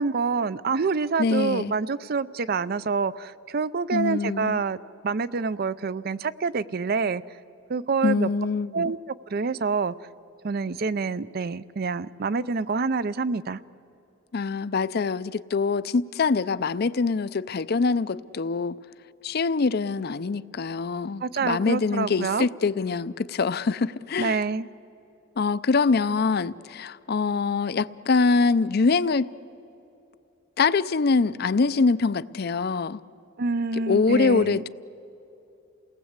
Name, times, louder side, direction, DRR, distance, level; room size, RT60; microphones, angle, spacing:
voice 1, 0.0-4.8 5.0-7.2 7.7-8.3 8.7-9.9 10.4-13.6 21.2-22.5 24.2-24.7 33.4-34.7, right 4 dB, 50° right, 0.5 m, -27 dB
voice 2, 1.2-1.7 3.9-4.6 8.0-8.9 14.3-18.8 19.2-24.4 25.4-29.3 30.6-33.0 33.9-34.7, left 4 dB, 55° left, 0.5 m, -24 dB
29.0 x 19.0 x 8.1 m
head